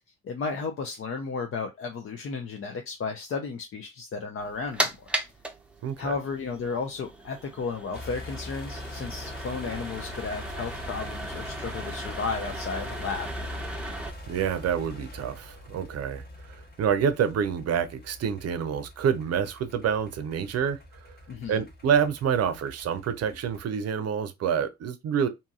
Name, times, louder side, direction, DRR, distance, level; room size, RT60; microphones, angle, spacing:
voice 1, 0.2-5.1 6.0-13.3 21.3-21.6, left 4 dB, 50° left, 0.6 m, -33 dB
sound 1, 4.4-14.1, right 1 dB, 5° right, 0.7 m, -37 dB
voice 2, 5.8-6.1 14.3-20.8 21.5-25.3, right 7 dB, 55° right, 0.6 m, -27 dB
Construction Bulldozer Catarpillar Engine Planierer, 7.9-23.6, left 2 dB, 30° left, 1.1 m, -42 dB
2.7 x 2.7 x 2.4 m
supercardioid pair, 55°, 29 cm